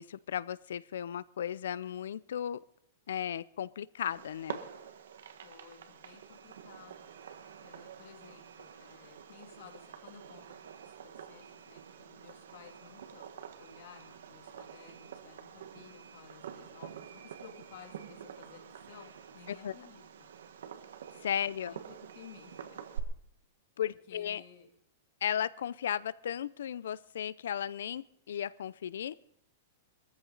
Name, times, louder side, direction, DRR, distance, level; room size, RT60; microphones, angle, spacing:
voice 1, 0.0-2.6 3.1-4.6 19.6-19.7 21.2-21.7 23.8-24.4 25.2-29.1, left 9 dB, 80° left, 20 dB, 0.5 m, -35 dB
Fireworks, 4.0-23.0, right 8 dB, 80° right, 1.6 m, -48 dB
voice 2, 5.4-7.1 7.6-10.5 10.8-13.3 13.6-20.3 21.3-22.8 23.9-24.7, left 7 dB, 50° left, 3 dB, 3.0 m, -55 dB
21.5 x 14.5 x 4.0 m, 0.72 s
supercardioid pair, 175°, 0 cm